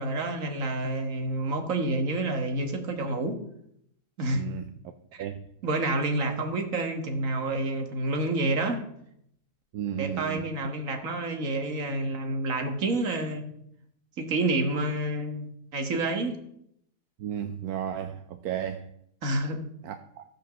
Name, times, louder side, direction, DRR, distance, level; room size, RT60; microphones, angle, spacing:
voice 1, 0.0-3.4 4.2-4.5 5.1-5.3 5.6-8.9 10.0-13.5 14.2-16.4 19.2-19.6, right 2 dB, 55° right, 1.8 m, -29 dB
voice 2, 4.3-4.7 5.2-5.4 9.7-10.5 17.2-18.9 19.8-20.2, right 9 dB, 70° right, 1.1 m, -34 dB
14.5 x 5.1 x 6.7 m
omnidirectional pair, 1.7 m